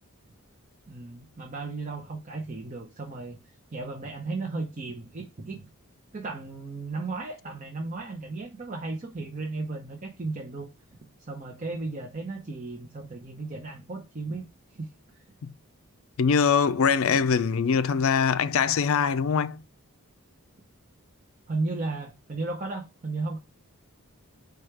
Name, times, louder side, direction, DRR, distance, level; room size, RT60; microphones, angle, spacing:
voice 1, 0.9-3.4 3.7-5.7 6.1-10.7 11.2-14.5 14.8-14.9 16.9-17.0 21.5-23.4, right 3 dB, 35° right, 0.6 m, -35 dB
voice 2, 16.2-19.6, left 6 dB, 65° left, 0.4 m, -23 dB
4.9 x 2.3 x 4.4 m
head